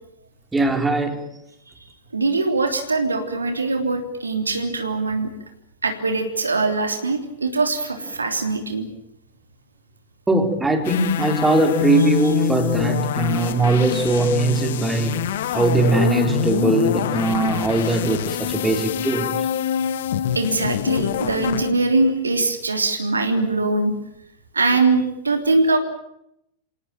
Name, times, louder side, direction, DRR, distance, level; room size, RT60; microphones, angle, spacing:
voice 1, 0.5-1.3 10.3-19.5, right 2 dB, 10° right, 3.9 m, -21 dB
voice 2, 2.1-5.3 5.8-8.9 20.3-24.0 24.5-25.8, right 3 dB, 75° right, 3.3 m, -22 dB
sound 1, 10.8-21.7, left 10 dB, 55° left, 1.2 m, -25 dB
27.0 x 18.0 x 9.0 m
figure-of-eight pair, 90°, 0 cm